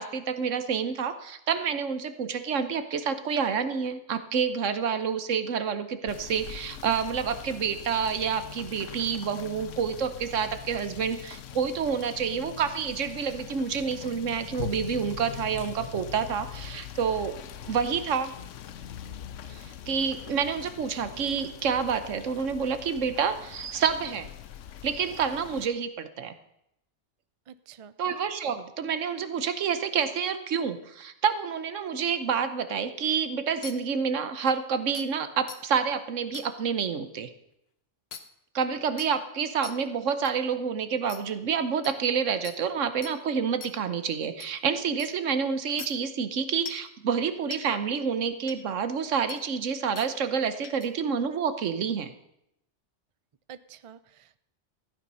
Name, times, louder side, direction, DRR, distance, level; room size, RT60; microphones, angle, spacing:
voice 1, 0.0-18.3 19.5-24.3 24.8-26.3 28.0-37.3 38.5-52.1, right 6 dB, 80° right, 10 dB, 1.3 m, -28 dB
Rain / Motor vehicle (road), 6.1-25.7, left 10 dB, 85° left, 1.0 m, -42 dB
voice 2, 27.5-27.9 53.5-54.4, right 8 dB, 50° right, 14 dB, 0.4 m, -48 dB
sound 1, 33.6-33.7 34.5-34.6 34.9-35.1 35.5-35.6 36.3-36.5 38.1-38.2 39.0-39.1 39.6-39.7 40.2-40.3 41.1-41.2 41.8-41.9 42.4-42.6 43.0-43.1 43.6-43.7 44.4-44.5 45.0-45.1 45.8-45.9 46.7-46.9 47.5-47.6 48.5-48.6 49.3-49.4 50.0-50.1 50.6-50.9, left 6 dB, 55° left, 1.2 m, -40 dB
14.5 x 9.4 x 5.5 m, 0.81 s
omnidirectional pair, 1.3 m